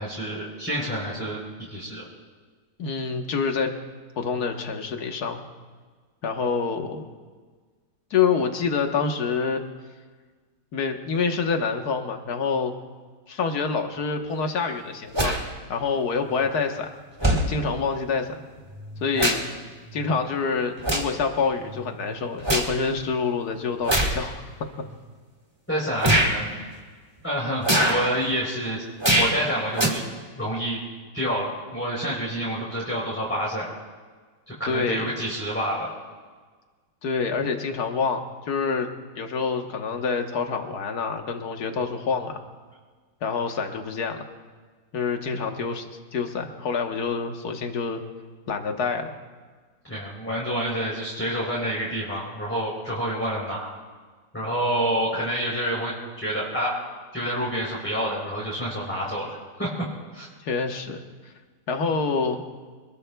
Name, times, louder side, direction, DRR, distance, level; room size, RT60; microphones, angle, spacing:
voice 1, 0.0-1.4 1.7-2.0 25.7-26.6 27.2-28.8 29.1-30.0 30.4-30.8 31.1-33.7 34.5-35.9 45.3-45.5 49.8-53.8 54.3-56.8 57.1-59.7 60.1-60.3, equal, 5° left, -7 dB, 3.5 m, -28 dB
voice 2, 2.8-3.7 4.2-5.5 6.2-7.1 8.1-9.6 10.7-12.7 13.3-15.4 15.7-16.9 17.2-18.4 19.0-19.4 19.9-24.4 34.7-35.1 37.0-38.9 39.2-42.4 43.2-44.3 44.9-45.9 46.1-48.0 48.5-49.1 60.4-61.0 61.7-62.4, left 5 dB, 60° left, 4 dB, 1.7 m, -27 dB
sound 1, 15.1-15.4 16.5-16.6 17.2-17.5 18.7-19.6 19.9-20.2 20.8-21.2 21.7-22.7 23.8-24.2 24.9-25.0 26.0-26.3 27.6-28.1 29.0-29.4 29.7-29.9, right 1 dB, 15° right, 1.9 m, -23 dB
26.5 x 20.5 x 2.3 m, 1.5 s
omnidirectional pair, 1.9 m